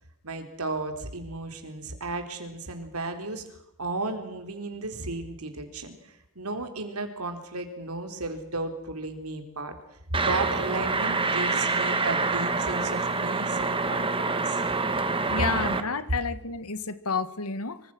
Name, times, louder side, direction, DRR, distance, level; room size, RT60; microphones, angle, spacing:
voice 1, 0.2-3.4 3.8-6.0 6.4-9.8 10.2-14.6, right 2 dB, 75° right, 6 dB, 3.9 m, -34 dB
sound 1, 10.1-15.8, right 3 dB, 25° right, 1.8 m, -26 dB
voice 2, 15.3-17.8, left 4 dB, 75° left, 13 dB, 1.8 m, -30 dB
25.5 x 25.0 x 6.3 m, 0.82 s
head